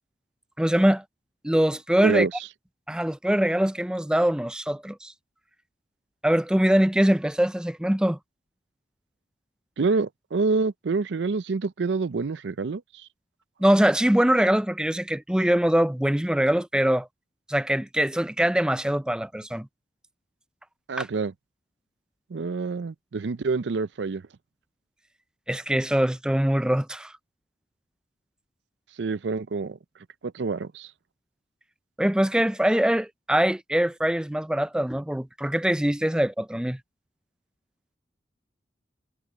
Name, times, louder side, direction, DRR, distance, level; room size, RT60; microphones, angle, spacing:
voice 1, 0.6-1.0 1.4-2.3 2.9-5.1 6.2-8.2 13.6-17.1 17.5-19.7 21.0-21.1 25.5-27.1 32.0-36.8, right 1 dB, 5° right, 0.3 m, -23 dB
voice 2, 9.8-13.1 20.9-21.3 22.3-24.2 29.0-29.8 30.2-30.9, right 4 dB, 85° right, 0.5 m, -27 dB
head